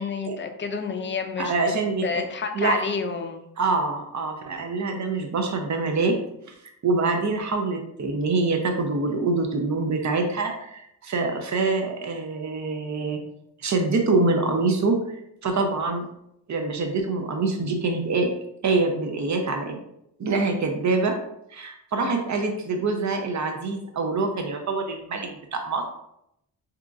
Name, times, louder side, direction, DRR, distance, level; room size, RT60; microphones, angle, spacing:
voice 1, 0.0-1.5 2.0-3.4 15.6-15.7 22.0-22.2, left 5 dB, 30° left, 6 dB, 0.4 m, -30 dB
voice 2, 1.4-2.2 2.5-2.8 3.6-6.2 6.8-13.2 13.6-15.2 15.4-16.1 16.5-18.4 18.6-19.8 20.2-21.2 21.5-25.9, right 3 dB, 45° right, 3 dB, 0.7 m, -25 dB
3.5 x 2.9 x 2.5 m, 0.76 s
cardioid pair, 80°, 41 cm